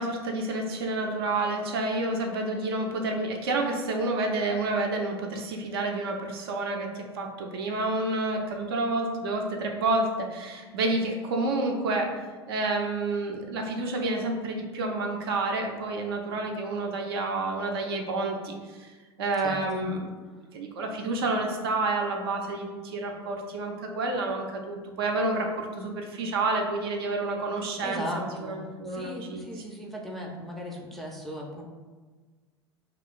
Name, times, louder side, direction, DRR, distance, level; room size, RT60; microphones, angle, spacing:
voice 1, 0.0-20.1 20.5-29.4, right 2 dB, 60° right, 2 dB, 0.5 m, -29 dB
voice 2, 19.4-19.9 27.8-31.6, equal, ahead, -2 dB, 0.4 m, -37 dB
2.3 x 2.3 x 3.6 m, 1.4 s
figure-of-eight pair, 80°, 14 cm